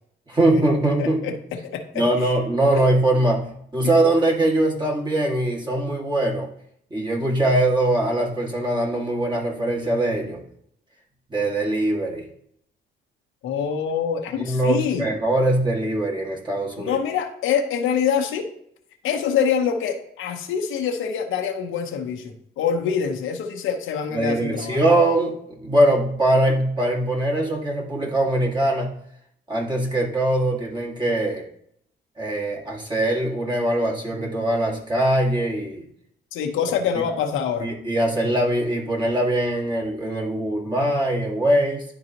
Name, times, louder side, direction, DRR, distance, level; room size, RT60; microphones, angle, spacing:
voice 1, 0.3-1.3 1.9-6.5 6.9-10.4 11.3-12.2 14.3-17.0 24.1-28.9 29.5-31.4 32.2-35.9 37.6-41.8, right 1 dB, 20° right, -2 dB, 2.0 m, -22 dB
voice 2, 1.0-2.3 13.4-15.1 16.8-18.5 19.0-24.9 36.3-37.7, left 7 dB, 85° left, 4 dB, 0.9 m, -25 dB
10.5 x 3.9 x 3.0 m, 0.71 s
cardioid pair, 90°, 20 cm